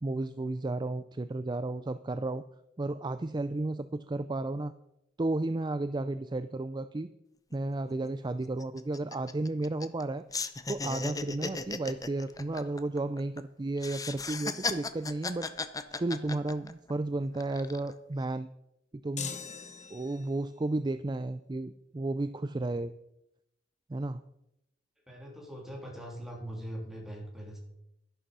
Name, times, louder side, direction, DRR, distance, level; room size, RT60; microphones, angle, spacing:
voice 1, 0.0-2.4 2.8-4.7 5.2-7.1 7.5-10.2 10.7-15.5 16.0-18.5 19.0-19.3 19.9-22.9 23.9-24.2, right 2 dB, 25° right, 12 dB, 0.4 m, -33 dB
sound 1, 7.5-7.6 7.9-8.1 8.4-10.0 10.3-13.4 13.8-16.9 17.3-17.9, left 3 dB, 20° left, 0.7 m, -36 dB
sound 2, 19.2-20.5, left 7 dB, 40° left, 1.1 m, -41 dB
voice 2, 25.1-27.6, equal, ahead, -1 dB, 3.4 m, -41 dB
11.5 x 11.5 x 5.5 m, 0.81 s
head